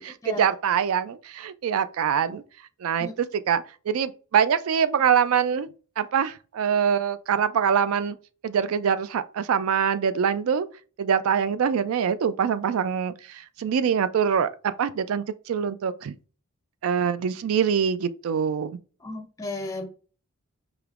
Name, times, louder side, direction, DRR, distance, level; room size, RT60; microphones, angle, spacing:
voice 1, 0.0-2.4 2.8-5.7 6.0-8.2 8.4-10.7 11.0-16.1 16.8-18.8, right 7 dB, 70° right, 0.3 m, -24 dB
voice 2, 19.0-19.9, left 2 dB, 15° left, 0.5 m, -33 dB
5.0 x 2.9 x 2.4 m
head